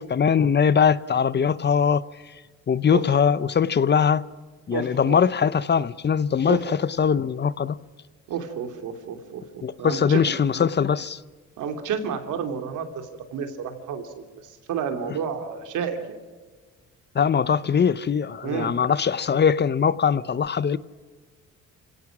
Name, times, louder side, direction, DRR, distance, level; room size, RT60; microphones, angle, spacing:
voice 1, 0.0-2.0 2.7-4.2 4.7-7.8 9.6-11.2 17.1-20.8, left 7 dB, 35° left, 0.7 m, -21 dB
voice 2, 4.7-5.2 6.4-6.6 8.3-10.3 11.6-16.0 18.4-18.7, right 7 dB, 80° right, 2.9 m, -31 dB
29.0 x 17.0 x 6.1 m
cardioid pair, 90°, 30 cm